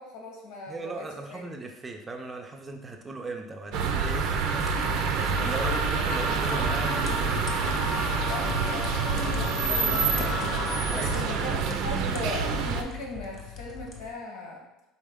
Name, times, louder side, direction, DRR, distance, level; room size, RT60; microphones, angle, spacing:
voice 1, 0.0-1.5 3.7-4.1 5.4-6.6 8.3-14.9, left 2 dB, 85° left, 0 dB, 1.3 m, -40 dB
voice 2, 0.7-4.7 5.2-7.4 10.9-11.1, right 3 dB, 20° right, 3 dB, 0.5 m, -37 dB
sound 1, 3.7-12.8, right 5 dB, 65° right, 0.5 m, -27 dB
sound 2, 4.1-14.1, left 7 dB, 40° left, 0.7 m, -41 dB
sound 3, 4.5-11.7, left 2 dB, 65° left, 0.9 m, -35 dB
4.3 x 3.3 x 3.6 m, 0.99 s
cardioid pair, 125°, 0 cm